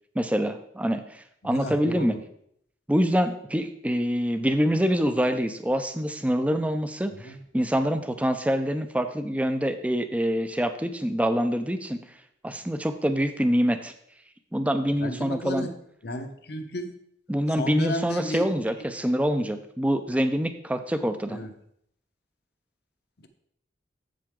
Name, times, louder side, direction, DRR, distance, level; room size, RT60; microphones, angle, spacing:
voice 1, 0.2-2.2 2.9-12.0 12.4-13.9 14.5-15.7 17.3-21.4, equal, 5° right, 9 dB, 0.5 m, -25 dB
voice 2, 1.4-2.2 7.1-7.4 15.0-15.7 16.0-16.9 17.5-18.5 18.8-18.9 21.3-21.5 23.2-23.3, left 1 dB, 60° left, 7 dB, 0.8 m, -34 dB
7.7 x 7.6 x 3.7 m, 0.70 s
head